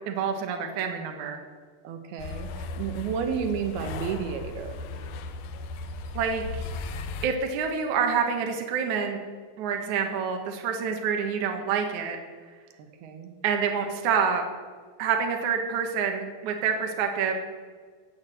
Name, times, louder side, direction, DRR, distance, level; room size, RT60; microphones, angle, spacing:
voice 1, 0.0-1.4 6.1-6.6 7.2-9.2 9.6-12.2 13.4-14.4 15.0-17.3, right 6 dB, 60° right, 4 dB, 2.6 m, -27 dB
voice 2, 1.8-4.8 12.8-13.3, right 7 dB, 85° right, 6 dB, 3.1 m, -32 dB
sound 1, 2.2-7.3, left 3 dB, 80° left, 2.7 m, -36 dB
16.0 x 8.3 x 7.9 m, 1.5 s
omnidirectional pair, 4.4 m